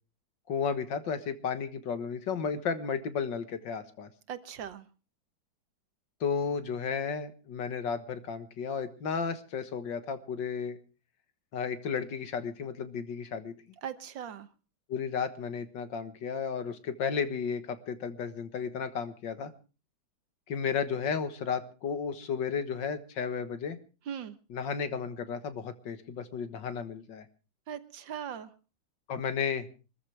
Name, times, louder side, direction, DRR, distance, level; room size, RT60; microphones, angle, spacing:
voice 1, 0.5-4.1 6.2-10.8 11.5-13.5 14.9-19.5 20.5-23.8 24.5-27.3 29.1-29.7, left 6 dB, 75° left, 10 dB, 2.1 m, -33 dB
voice 2, 4.3-4.9 13.8-14.5 24.1-24.4 27.7-28.5, right 8 dB, 80° right, 12 dB, 1.8 m, -39 dB
24.5 x 14.0 x 3.4 m, 0.34 s
omnidirectional pair, 2.0 m